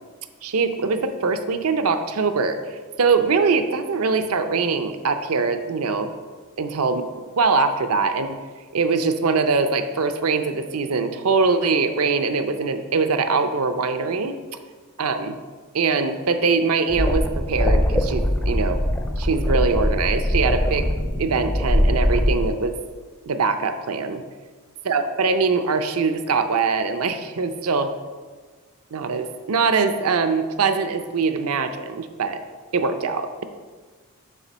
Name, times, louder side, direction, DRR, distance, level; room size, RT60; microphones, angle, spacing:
voice 1, 0.4-6.1 6.6-7.1 7.4-8.4 8.7-14.4 15.0-15.4 15.7-18.8 19.2-20.9 21.2-22.7 23.3-24.2 24.9-27.9 28.9-32.4 32.7-33.4, right 4 dB, 75° right, 8 dB, 0.5 m, -22 dB
sound 1, 16.9-22.5, equal, 10° left, 0.4 m, -22 dB
7.0 x 3.6 x 6.0 m, 1.5 s
head